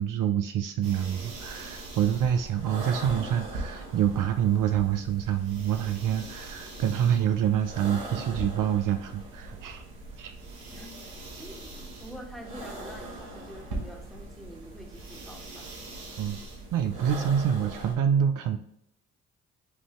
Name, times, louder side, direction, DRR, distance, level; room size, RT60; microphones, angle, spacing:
voice 1, 0.0-9.8 10.2-10.4 16.2-16.4 16.7-18.6, right 9 dB, 60° right, 7 dB, 0.5 m, -26 dB
sound 1, 0.8-17.9, right 2 dB, 85° right, 1.2 m, -40 dB
voice 2, 11.4-15.7, equal, ahead, 0 dB, 1.5 m, -46 dB
5.9 x 2.7 x 3.1 m, 0.75 s
hypercardioid pair, 50°, 36 cm